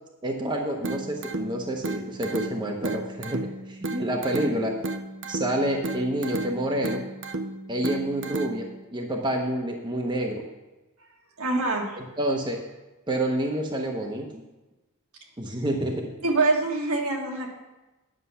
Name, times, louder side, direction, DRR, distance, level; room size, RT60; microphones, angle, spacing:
voice 1, 0.2-4.7 5.3-7.1 7.7-10.4 12.2-12.6 13.1-14.4 15.4-16.1, right 1 dB, 20° right, 1 dB, 0.8 m, -28 dB
sound 1, 0.8-8.8, right 2 dB, 55° right, 0.6 m, -34 dB
voice 2, 11.4-12.0 16.2-17.5, right 3 dB, 75° right, 0 dB, 1.8 m, -25 dB
9.8 x 6.7 x 5.6 m, 1.1 s
head